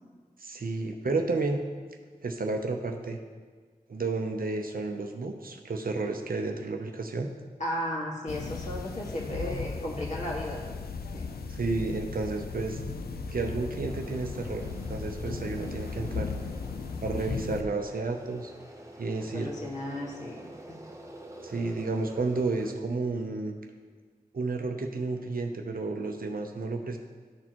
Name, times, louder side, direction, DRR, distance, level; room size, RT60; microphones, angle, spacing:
voice 1, 0.4-1.6 2.2-3.2 3.9-7.3 11.5-12.8 13.3-16.3 17.0-18.5 19.0-19.5 21.4-23.6 24.3-27.0, right 3 dB, 65° right, 4 dB, 0.7 m, -31 dB
voice 2, 7.6-10.7 11.1-11.3 19.2-20.8, equal, 50° left, -4 dB, 1.8 m, -35 dB
sound 1, 8.3-17.6, left 4 dB, 85° left, 0.5 m, -36 dB
sound 2, 13.9-22.7, right 1 dB, 20° right, 0.8 m, -48 dB
12.0 x 4.2 x 3.0 m, 1.5 s
wide cardioid pair, 60°, 16 cm